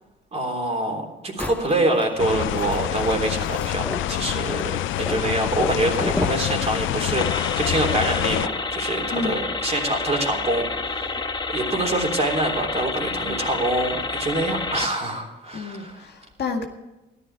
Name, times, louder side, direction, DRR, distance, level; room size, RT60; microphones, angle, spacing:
voice 1, 0.3-11.2 11.5-16.0, right 2 dB, 30° right, 2 dB, 3.4 m, -25 dB
sound 1, 1.4-6.5, left 1 dB, 5° left, 0.7 m, -33 dB
sound 2, 2.2-8.5, left 14 dB, 80° left, 0.5 m, -26 dB
sound 3, 7.2-14.9, left 3 dB, 25° left, 1.2 m, -29 dB
voice 2, 15.5-16.7, left 4 dB, 55° left, 3 dB, 2.0 m, -30 dB
13.5 x 12.0 x 4.8 m, 1.0 s
cardioid pair, 90°, 20 cm